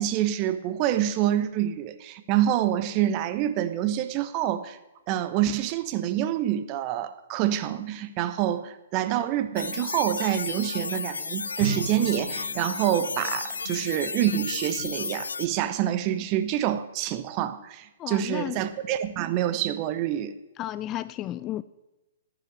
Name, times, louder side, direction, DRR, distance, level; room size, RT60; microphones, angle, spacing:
voice 1, 0.0-4.8 5.1-20.3, right 11 dB, 30° right, 1.1 m, -27 dB
sound 1, 9.6-15.5, left 5 dB, 70° left, 0.6 m, -33 dB
Drum, 11.6-14.2, right 5 dB, 10° right, 3.5 m, -37 dB
voice 2, 18.0-18.6 20.6-21.6, left 13 dB, 25° left, 0.4 m, -33 dB
13.5 x 10.5 x 6.4 m
figure-of-eight pair, 120°, 0 cm